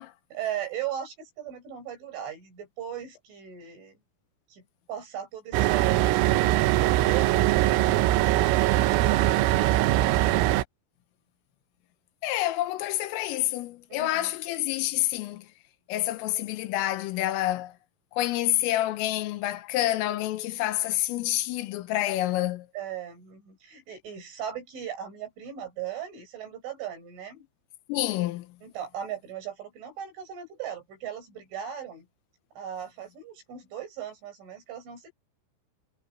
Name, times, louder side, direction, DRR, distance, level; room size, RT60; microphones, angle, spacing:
voice 1, 0.3-4.0 4.5-4.6 4.9-7.8 8.1-10.3 13.9-14.3 22.7-27.5 28.6-32.1 32.6-35.1, right 10 dB, 70° right, 10.5 m, -38 dB
sound 1, 5.5-10.6, right 15 dB, 90° right, 3.6 m, -22 dB
voice 2, 12.2-15.5 15.9-17.7 18.1-22.7 27.9-28.5, left 15 dB, 90° left, 3.7 m, -28 dB
omnidirectional pair, 5.7 m